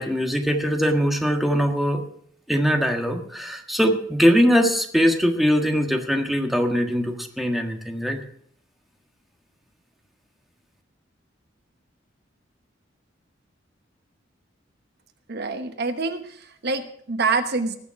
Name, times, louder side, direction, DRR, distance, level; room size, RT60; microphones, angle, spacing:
voice 1, 0.0-2.0 2.5-8.2, equal, ahead, 3 dB, 1.5 m, -21 dB
voice 2, 15.3-17.8, right 4 dB, 55° right, 8 dB, 1.1 m, -26 dB
19.0 x 7.2 x 5.7 m, 0.63 s
head